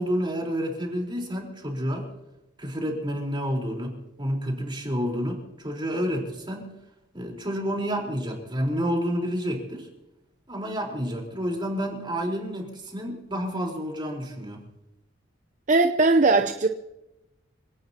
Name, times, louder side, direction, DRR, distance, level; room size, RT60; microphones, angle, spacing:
voice 1, 0.0-2.1 2.6-6.7 7.1-9.9 10.5-14.6, equal, 25° right, -1 dB, 4.3 m, -29 dB
voice 2, 15.7-16.7, right 3 dB, 40° right, 6 dB, 0.8 m, -19 dB
27.0 x 18.0 x 3.0 m, 0.93 s
head